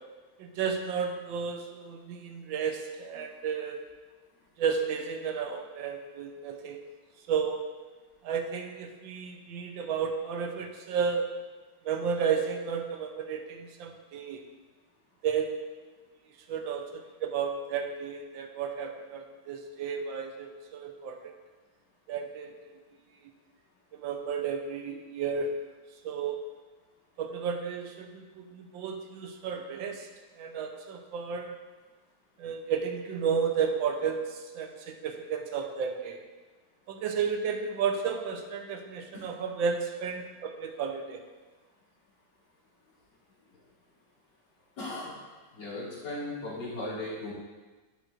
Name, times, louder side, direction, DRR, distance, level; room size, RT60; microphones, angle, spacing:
voice 1, 0.4-3.8 4.6-6.8 7.3-7.7 8.2-11.3 11.8-14.4 15.2-15.6 16.5-21.2 22.1-22.5 23.9-25.5 26.0-26.4 27.2-30.1 30.4-31.6 32.4-36.2 36.9-41.2, right 6 dB, 75° right, 4 dB, 1.5 m, -32 dB
voice 2, 44.8-45.1 45.5-47.3, left 2 dB, 60° left, -8 dB, 2.9 m, -37 dB
11.0 x 7.1 x 2.6 m, 1.3 s
omnidirectional pair, 2.2 m